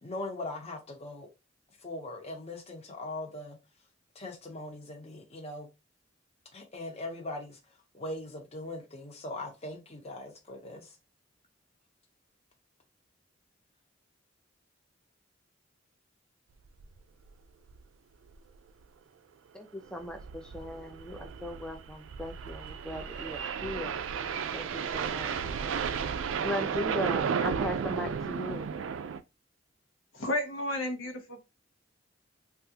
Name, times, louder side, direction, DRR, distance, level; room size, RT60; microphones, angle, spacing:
voice 1, 0.0-1.3 1.8-3.6 4.1-5.7 6.5-7.6 7.9-10.9, left 2 dB, 35° left, 0.8 m, -40 dB
sound 1, 16.8-17.0 17.3-17.4 17.7-17.8 18.3-18.6 19.9-29.2, right 6 dB, 85° right, 0.4 m, -33 dB
voice 2, 19.5-24.0 24.5-25.4 26.4-28.7, left 1 dB, 5° left, 0.3 m, -38 dB
voice 3, 30.1-31.4, left 1 dB, 90° left, 0.8 m, -32 dB
3.4 x 2.4 x 2.8 m
head